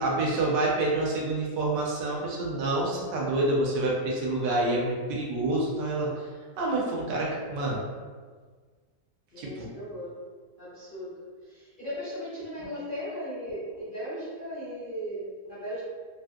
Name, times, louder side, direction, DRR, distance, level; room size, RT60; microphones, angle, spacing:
voice 1, 0.0-6.2 6.6-7.8 9.4-9.7, right 2 dB, 85° right, -3 dB, 1.4 m, -27 dB
voice 2, 9.3-10.2 10.6-15.8, equal, 50° left, -10 dB, 0.6 m, -37 dB
3.4 x 2.5 x 2.3 m, 1.5 s
omnidirectional pair, 1.8 m